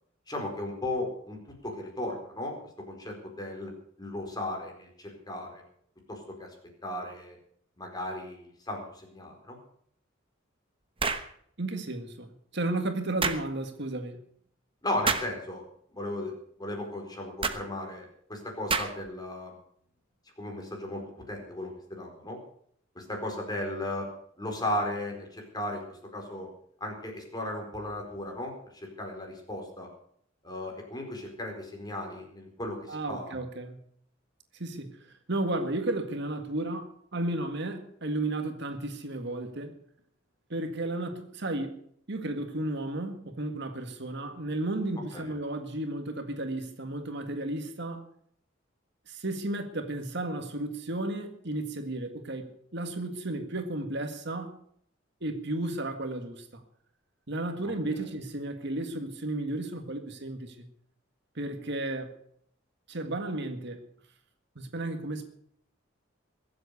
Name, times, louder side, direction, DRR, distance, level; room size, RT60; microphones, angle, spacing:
voice 1, 0.3-2.6 2.8-3.7 4.0-5.6 6.1-6.5 6.8-7.4 7.8-9.6 14.8-15.6 15.9-16.3 16.6-19.6 20.4-22.4 22.9-24.1 24.4-26.5 26.8-29.9 30.4-33.3 45.1-45.3 57.9-58.0, left 1 dB, 20° left, 2 dB, 4.4 m, -36 dB
sound 1, 11.0-11.3 13.2-13.4 15.0-15.3 17.4-17.6 18.7-19.1, right 5 dB, 30° right, 1.1 m, -28 dB
voice 2, 11.6-12.3 12.5-14.2 32.9-33.8 34.6-34.9 35.3-39.8 40.5-41.8 42.1-48.1 49.1-54.6 55.2-56.6 57.3-60.7 61.4-62.1 62.9-63.8 64.6-65.2, right 2 dB, 60° right, 6 dB, 1.9 m, -33 dB
22.0 x 7.9 x 6.8 m, 0.65 s
head